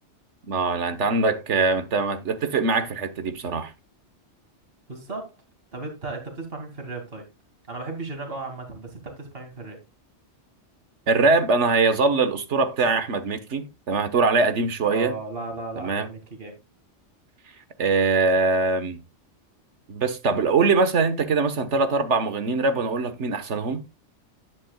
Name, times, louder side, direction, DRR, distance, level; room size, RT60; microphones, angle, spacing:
voice 1, 0.5-3.7 11.1-15.1 15.8-16.1 17.8-19.0 19.9-23.8, right 4 dB, 70° right, 1.6 m, -22 dB
voice 2, 4.9-5.4 5.7-7.3 7.7-9.8 14.8-16.5, right 3 dB, 50° right, 2.7 m, -35 dB
11.0 x 10.0 x 2.3 m
omnidirectional pair, 1.2 m